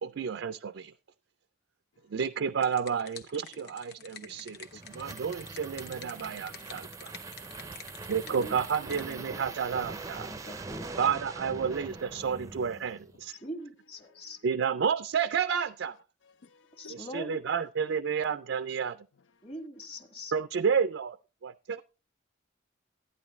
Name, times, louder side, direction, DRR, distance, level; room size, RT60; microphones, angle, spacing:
voice 1, 0.0-0.9 2.1-7.1 7.6-7.7 8.1-10.3 11.0-13.4 14.4-16.0 16.9-19.0 20.3-21.2 21.4-21.8, right 6 dB, 75° right, 0.4 m, -31 dB
sound 1, 2.3-9.2, left 6 dB, 55° left, 1.1 m, -49 dB
voice 2, 4.1-5.2 5.7-5.8 6.5-6.7 7.3-8.1 10.2-11.0 12.1-12.5 13.2-13.5 14.0-14.3 16.2-17.2, left 3 dB, 80° left, 0.6 m, -59 dB
sound 2, 4.4-13.2, right 3 dB, 20° right, 0.5 m, -43 dB
voice 3, 4.8-5.3 6.1-6.4 6.7-6.8 8.2-8.5 8.9-9.6 9.9-11.0 13.3-14.4 16.8-17.4 19.4-20.3, equal, 30° left, 1.7 m, -44 dB
13.0 x 9.5 x 3.1 m
head